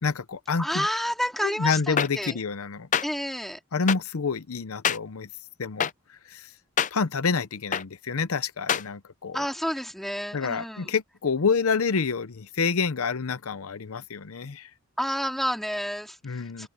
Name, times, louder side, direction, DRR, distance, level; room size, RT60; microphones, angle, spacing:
voice 1, 0.0-0.9 1.4-2.9 3.7-5.3 5.6-6.5 6.9-9.4 10.3-14.7 16.2-16.7, left 5 dB, 85° left, 0.7 m, -28 dB
voice 2, 0.6-2.4 3.0-3.6 9.3-10.9 15.0-16.7, equal, ahead, 3.3 m, -30 dB
sound 1, 2.0-2.1 2.9-3.0 3.9-4.0 4.8-5.0 5.8-5.9 6.8-6.9 7.7-7.8 8.7-8.8, left 8 dB, 35° left, 0.5 m, -24 dB
head